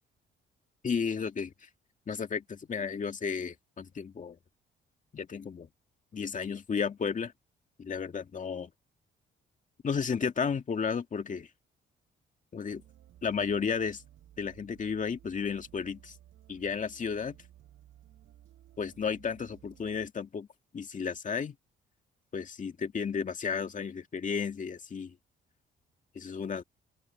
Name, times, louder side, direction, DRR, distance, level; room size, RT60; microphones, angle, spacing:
voice 1, 0.8-1.5 2.1-4.4 5.1-5.7 6.1-7.3 7.8-8.7 9.8-11.5 12.5-12.8 13.2-14.0 14.4-16.2 16.5-17.4 18.8-20.5 20.7-21.6 22.3-25.1 26.1-26.6, left 6 dB, 40° left, 2.2 m, -33 dB
sound 1, 12.7-20.1, right 12 dB, 80° right, 7.0 m, -57 dB
open air
cardioid pair, 90°, 20 cm